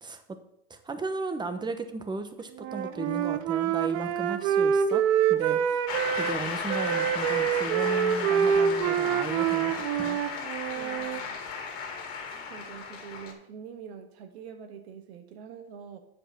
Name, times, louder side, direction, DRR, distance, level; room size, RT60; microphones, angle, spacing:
voice 1, 0.0-0.4 0.7-5.0 5.3-5.8 6.1-10.2, right 3 dB, 15° right, 8 dB, 1.0 m, -35 dB
Wind instrument woodwind instrument, 2.6-6.4 6.7-11.2, right 8 dB, 55° right, 0.8 m, -26 dB
Shout / Cheering / Applause, 5.9-13.3, left 5 dB, 45° left, 2.3 m, -35 dB
voice 2, 10.7-11.4 12.5-16.0, right 7 dB, 70° right, 7 dB, 1.5 m, -45 dB
7.8 x 5.3 x 6.0 m, 0.74 s
hypercardioid pair, 100°, 32 cm